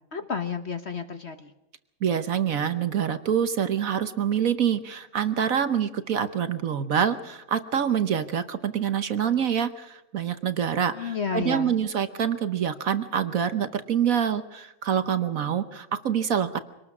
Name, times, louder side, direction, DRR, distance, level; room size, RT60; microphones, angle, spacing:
voice 1, 0.1-1.5 10.9-11.8, left 6 dB, 45° left, 8 dB, 1.0 m, -31 dB
voice 2, 2.0-16.6, right 8 dB, 55° right, 11 dB, 1.2 m, -26 dB
24.5 x 19.0 x 6.1 m, 0.95 s
omnidirectional pair, 1.9 m